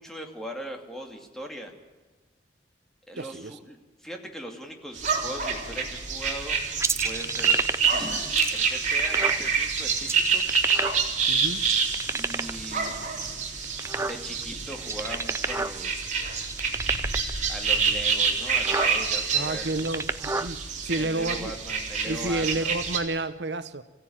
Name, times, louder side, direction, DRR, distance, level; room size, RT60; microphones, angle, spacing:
voice 1, 0.0-1.7 3.1-6.6 7.0-7.6 7.9-8.2 8.5-10.4 12.1-13.4 14.0-16.2 17.5-19.8 21.0-23.0, equal, ahead, 2 dB, 2.8 m, -40 dB
voice 2, 3.2-3.6 11.3-11.7 19.3-21.5 22.0-23.8, right 2 dB, 70° right, 12 dB, 0.9 m, -30 dB
sound 1, 5.0-23.0, right 5 dB, 45° right, 3.8 m, -27 dB
sound 2, 6.8-8.0 8.4-9.4 10.0-11.2 11.6-12.6 13.2-14.4 14.8-15.8 16.0-16.1 16.4-17.3 18.0-18.1 18.4-18.9 19.6-20.5, right 3 dB, 15° right, 0.6 m, -29 dB
27.0 x 15.5 x 8.9 m, 1.3 s
head